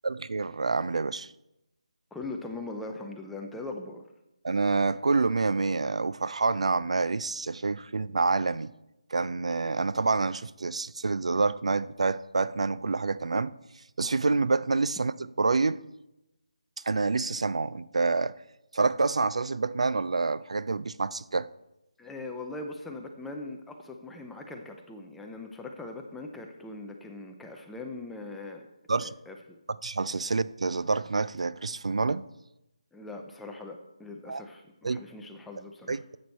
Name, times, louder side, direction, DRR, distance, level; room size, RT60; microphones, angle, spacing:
voice 1, 0.0-1.3 4.4-8.7 9.1-13.5 14.0-15.8 16.8-18.4 18.7-21.5 28.9-29.1 29.8-32.3 34.3-34.4 34.8-35.0 35.9-36.2, right 3 dB, 70° right, 0.4 m, -27 dB
voice 2, 2.1-4.0 22.0-28.6 29.0-29.6 32.9-36.0, left 2 dB, 5° left, 0.4 m, -41 dB
10.5 x 7.9 x 4.1 m
figure-of-eight pair, 170°, 4 cm